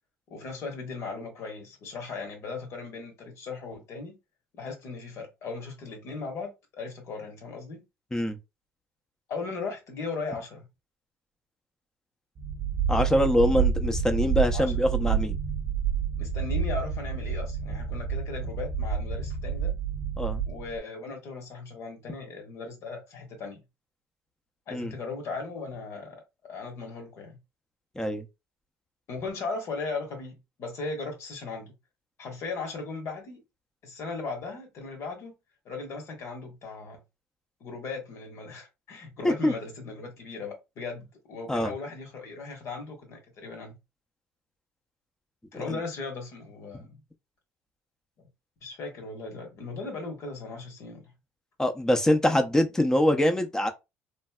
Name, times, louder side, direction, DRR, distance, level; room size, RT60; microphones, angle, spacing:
voice 1, 0.3-4.2 4.5-7.8 9.3-10.7 14.5-14.7 16.2-19.7 20.5-23.6 24.7-26.2 26.4-27.4 29.1-31.7 32.2-33.4 33.8-35.3 35.6-37.0 37.6-43.8 45.5-47.0 48.2-48.3 48.6-51.1, left 4 dB, 60° left, 1.3 m, -37 dB
sound 1, 12.4-20.8, right 6 dB, 45° right, 0.7 m, -29 dB
voice 2, 12.9-15.4 20.2-20.4 24.7-24.9 28.0-28.2 39.2-39.5 41.5-41.7 45.7-45.8 51.6-53.7, left 1 dB, 10° left, 0.6 m, -24 dB
3.1 x 2.6 x 2.3 m
cardioid pair, 100°, 6 cm